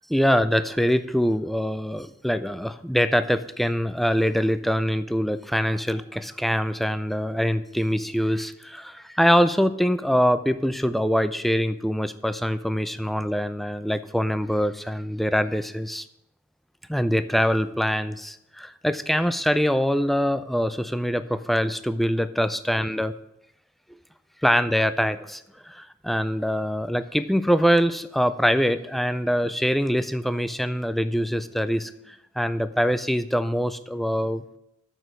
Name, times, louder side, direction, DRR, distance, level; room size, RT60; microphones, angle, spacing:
voice 1, 0.1-16.0 16.9-23.1 24.4-34.6, equal, ahead, 12 dB, 0.3 m, -24 dB
7.0 x 6.3 x 7.5 m, 0.82 s
head